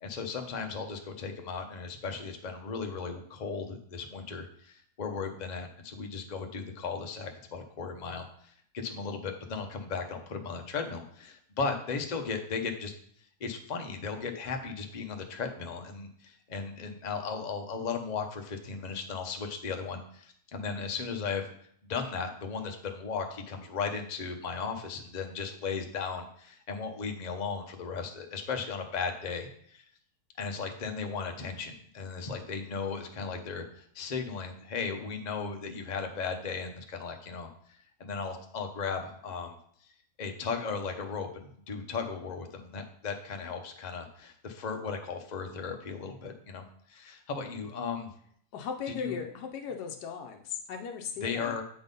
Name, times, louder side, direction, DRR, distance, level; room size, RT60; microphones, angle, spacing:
voice 1, 0.0-12.9 13.4-21.5 21.9-29.8 30.4-39.5 40.2-46.6 46.9-48.1 49.0-49.2 51.2-51.6, left 5 dB, 35° left, 4 dB, 0.7 m, -36 dB
voice 2, 48.5-51.6, left 6 dB, 80° left, 3 dB, 1.2 m, -37 dB
8.1 x 3.9 x 5.3 m, 0.63 s
omnidirectional pair, 1.7 m